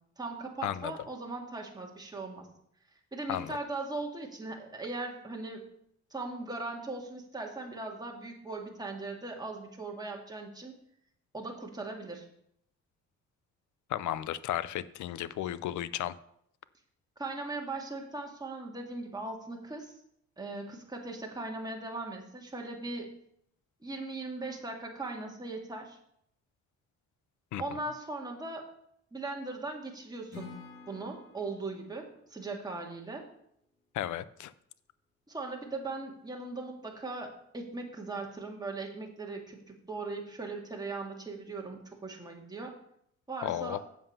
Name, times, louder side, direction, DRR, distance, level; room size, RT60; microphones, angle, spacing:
voice 1, 0.2-2.5 3.1-5.6 6.1-10.7 11.3-12.3 17.2-19.9 20.4-23.1 23.8-26.0 27.6-28.7 29.1-30.6 30.9-33.3 35.3-42.7 43.3-43.8, right 3 dB, 15° right, 0 dB, 2.1 m, -39 dB
voice 2, 13.9-16.1 27.5-27.6 33.9-34.5 43.4-43.8, left 12 dB, 75° left, 16 dB, 0.6 m, -34 dB
Acoustic guitar / Strum, 30.3-33.5, left 5 dB, 55° left, 3.3 m, -51 dB
7.7 x 7.5 x 5.4 m, 0.72 s
cardioid pair, 90°, 30 cm